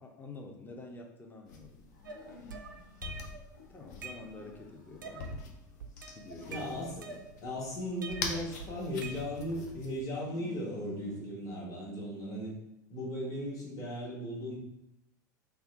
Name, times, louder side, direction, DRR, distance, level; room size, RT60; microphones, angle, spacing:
voice 1, 0.0-1.9 2.3-2.6 3.7-5.3 6.1-7.4, left 3 dB, 20° left, 2 dB, 0.6 m, -48 dB
sound 1, 1.5-10.0, left 4 dB, 65° left, 0.5 m, -45 dB
sound 2, 1.9-3.1 3.5-5.6 6.0-7.2 7.7-9.6 10.1-11.3, left 4 dB, 85° left, 0.9 m, -55 dB
sound 3, 2.0-3.5 3.8-4.6 5.0-5.5 5.8-7.6 8.0-9.6, right 5 dB, 85° right, 0.4 m, -46 dB
voice 2, 6.5-7.1 7.4-12.5 12.9-14.6, equal, 35° left, -5 dB, 1.3 m, -37 dB
3.4 x 2.2 x 3.4 m, 0.85 s
figure-of-eight pair, 80°, 10 cm